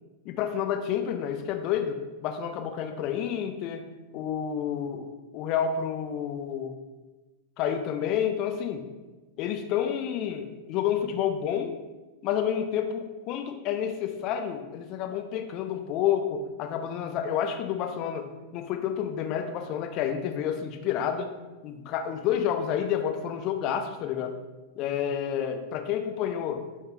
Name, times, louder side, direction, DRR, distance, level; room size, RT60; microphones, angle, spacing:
voice 1, 0.3-3.8 4.1-6.7 7.6-8.8 9.4-11.7 12.2-18.3 18.5-21.3 21.6-24.3 24.8-26.6, left 9 dB, 40° left, 6 dB, 0.3 m, -29 dB
3.3 x 3.1 x 3.1 m, 1.2 s
figure-of-eight pair, 90°, 0 cm